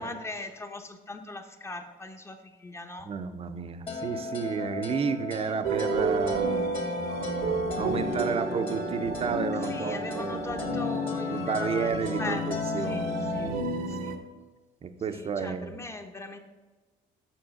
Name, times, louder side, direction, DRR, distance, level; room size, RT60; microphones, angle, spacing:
voice 1, 0.0-3.1 9.6-13.5 13.9-14.2 15.1-16.4, left 2 dB, 15° left, 6 dB, 0.9 m, -39 dB
voice 2, 3.1-10.4 11.3-14.2 14.8-15.8, right 6 dB, 35° right, 9 dB, 0.7 m, -32 dB
sound 1, 3.9-13.5, left 3 dB, 30° left, 1.7 m, -35 dB
sound 2, 5.6-14.2, right 2 dB, 75° right, 1.0 m, -32 dB
7.2 x 5.6 x 6.3 m, 1.3 s
cardioid pair, 110°, 17 cm